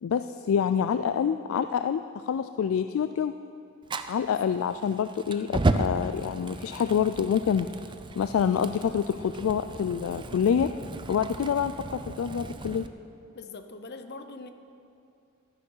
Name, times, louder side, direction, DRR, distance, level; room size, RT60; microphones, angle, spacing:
voice 1, 0.0-3.4 4.1-7.7 8.2-10.7 11.1-12.9, left 7 dB, 65° left, 10 dB, 0.3 m, -27 dB
Fire, 3.9-12.9, right 2 dB, 20° right, 0.4 m, -34 dB
voice 2, 13.3-14.5, left 3 dB, 50° left, 8 dB, 0.7 m, -42 dB
12.0 x 9.7 x 5.6 m, 2.6 s
head